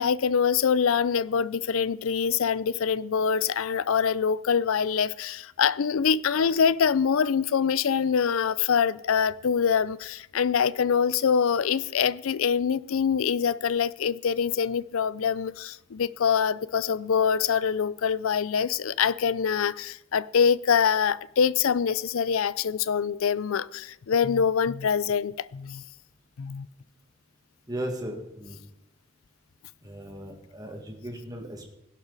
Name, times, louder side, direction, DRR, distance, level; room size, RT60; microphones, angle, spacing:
voice 1, 0.0-25.8 26.4-26.7, left 7 dB, 75° left, 0.4 m, -24 dB
voice 2, 27.7-28.6 29.8-31.7, right 1 dB, 15° right, 1.9 m, -36 dB
17.5 x 11.0 x 4.1 m
head